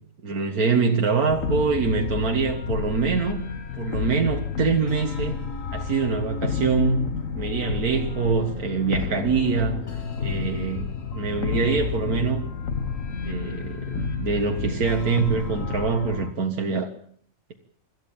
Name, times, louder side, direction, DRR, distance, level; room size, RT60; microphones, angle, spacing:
voice 1, 0.2-3.4 3.8-5.4 5.7-7.1 7.4-12.4 13.2-16.9, right 5 dB, 85° right, 3 dB, 2.1 m, -24 dB
sound 1, 1.3-16.3, left 6 dB, 65° left, 2.2 m, -30 dB
26.0 x 13.5 x 8.9 m, 0.63 s
omnidirectional pair, 1.5 m